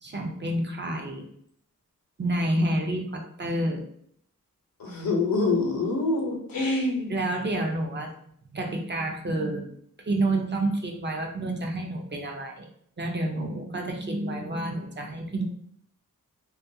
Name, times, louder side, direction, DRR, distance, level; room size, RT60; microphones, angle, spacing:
voice 1, 0.0-1.3 2.2-3.9 7.1-8.1 8.5-9.7 10.1-12.7 13.0-15.5, right 1 dB, 35° right, 2 dB, 0.4 m, -29 dB
voice 2, 4.8-7.1, left 3 dB, 90° left, 1 dB, 0.7 m, -25 dB
2.3 x 2.2 x 2.6 m, 0.66 s
wide cardioid pair, 120°, 34 cm